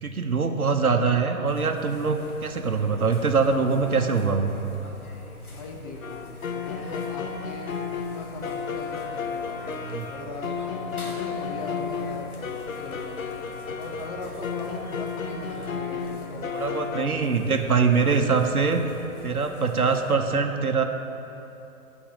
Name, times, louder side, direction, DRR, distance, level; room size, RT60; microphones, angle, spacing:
voice 1, 0.0-4.5 9.8-10.1 16.5-18.8 19.2-20.8, right 5 dB, 80° right, 5 dB, 1.0 m, -23 dB
sound 1, 1.4-20.2, left 2 dB, 85° left, 1.4 m, -43 dB
voice 2, 5.5-9.6 10.1-10.5 11.0-13.3 13.8-17.3, left 3 dB, 25° left, 1 dB, 1.0 m, -40 dB
sound 2, 6.0-17.1, left 6 dB, 65° left, 0.8 m, -33 dB
sound 3, 9.3-19.4, right 3 dB, 60° right, 1.4 m, -48 dB
8.7 x 6.2 x 7.1 m, 3.0 s
figure-of-eight pair, 130°, 43 cm